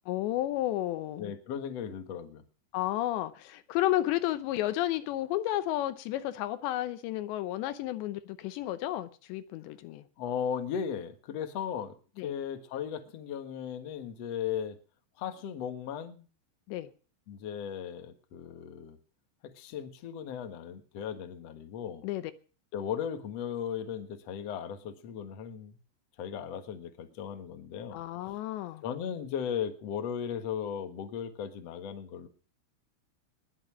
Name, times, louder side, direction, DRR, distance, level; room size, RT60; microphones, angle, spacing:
voice 1, 0.1-1.3 2.7-10.0 12.2-12.3 16.7-16.9 22.0-22.3 27.9-28.8, left 14 dB, 80° left, 3.1 m, -32 dB
voice 2, 1.2-2.4 10.2-11.9 12.2-14.8 15.2-16.3 17.3-19.0 19.4-22.0 22.7-25.8 26.2-28.0 28.8-32.3, left 8 dB, 55° left, 1.8 m, -36 dB
20.5 x 7.1 x 7.4 m
omnidirectional pair, 5.2 m